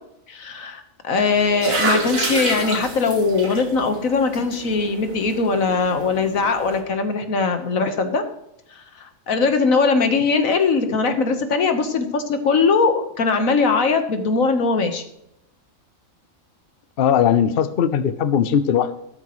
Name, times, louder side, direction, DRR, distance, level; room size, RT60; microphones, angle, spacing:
voice 1, 0.3-8.2 9.3-15.0, left 4 dB, 85° left, 7 dB, 1.7 m, -20 dB
sound 1, 1.2-6.8, right 2 dB, 80° right, 2.4 m, -29 dB
voice 2, 17.0-19.0, left 8 dB, 50° left, 12 dB, 0.8 m, -19 dB
13.5 x 13.0 x 3.1 m, 0.79 s
omnidirectional pair, 1.4 m